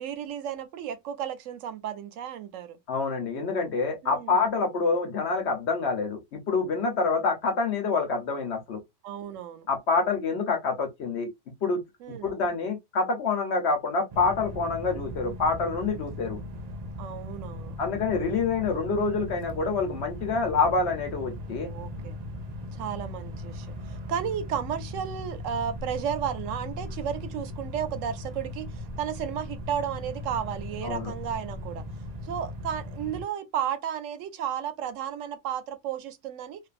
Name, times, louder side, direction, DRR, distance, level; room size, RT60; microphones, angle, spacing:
voice 1, 0.0-2.8 4.0-4.4 9.0-9.7 12.0-12.3 17.0-17.8 21.6-22.2 22.7-31.8 32.2-36.6, right 9 dB, 85° right, 0.9 m, -33 dB
voice 2, 2.9-8.8 9.7-11.3 11.6-11.8 12.1-16.4 17.8-21.7 30.8-31.1, left 4 dB, 65° left, 1.1 m, -27 dB
sound 1, 14.1-33.2, left 1 dB, 55° right, 0.4 m, -38 dB
2.5 x 2.5 x 2.4 m
omnidirectional pair, 1.3 m